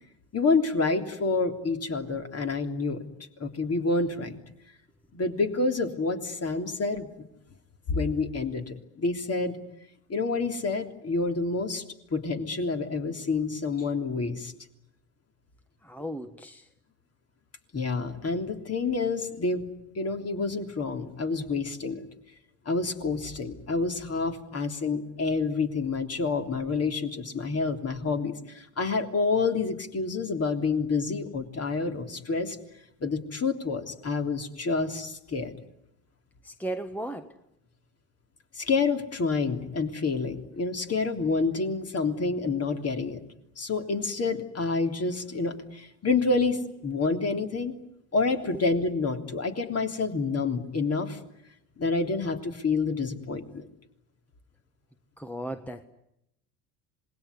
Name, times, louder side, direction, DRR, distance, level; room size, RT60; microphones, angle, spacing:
voice 1, 0.3-3.1 3.4-4.4 5.1-7.1 7.9-9.6 10.1-11.8 12.1-14.5 17.7-19.6 19.9-22.0 22.6-32.6 33.0-35.5 38.5-43.2 43.6-47.7 48.1-51.2 51.8-53.7, left 4 dB, 30° left, 5 dB, 3.3 m, -28 dB
voice 2, 15.8-16.7 36.4-37.3 55.2-55.8, right 1 dB, 5° left, 9 dB, 1.4 m, -36 dB
27.0 x 20.5 x 9.7 m, 0.82 s
hypercardioid pair, 80°, 49 cm